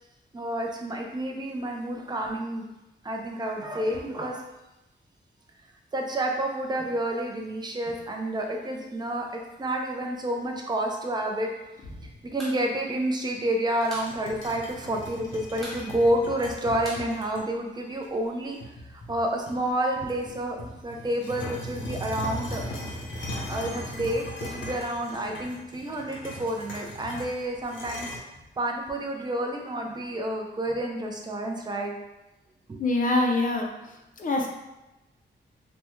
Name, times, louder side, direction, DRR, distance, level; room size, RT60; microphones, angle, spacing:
voice 1, 0.3-2.7 3.0-4.4 5.9-11.5 12.2-18.6 18.8-22.6 23.5-28.1 28.6-31.9 32.7-32.8, right 1 dB, 20° right, 1 dB, 0.4 m, -29 dB
sound 1, 12.4-12.6 12.9-13.0 13.3-14.1 14.5-14.6 14.8-15.2 15.6-17.9, equal, ahead, 0.8 m, -42 dB
sound 2, 13.8-17.4 18.0-18.1 18.6-19.7 20.1-28.2, left 1 dB, 90° left, 0.7 m, -38 dB
voice 2, 32.8-33.7 34.2-34.5, left 2 dB, 45° left, 1 dB, 0.5 m, -24 dB
3.4 x 2.1 x 3.0 m, 0.99 s
wide cardioid pair, 175°, 19 cm